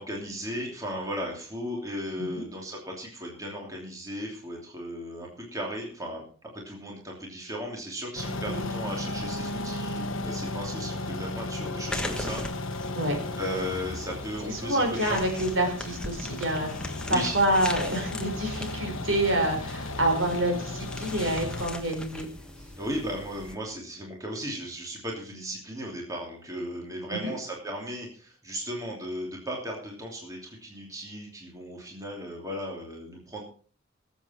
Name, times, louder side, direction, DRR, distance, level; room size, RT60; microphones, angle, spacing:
voice 1, 0.0-6.2 6.5-12.4 12.7-13.0 13.4-15.2 17.0-17.4 22.8-33.4, equal, 15° right, -1 dB, 2.9 m, -36 dB
sound 1, 8.2-21.7, left 2 dB, 65° left, 1.1 m, -35 dB
sound 2, 11.9-23.5, left 1 dB, 5° left, 1.3 m, -40 dB
voice 2, 14.5-22.3 27.1-27.3, right 1 dB, 60° right, 3 dB, 4.2 m, -27 dB
20.0 x 8.0 x 4.4 m, 0.42 s
head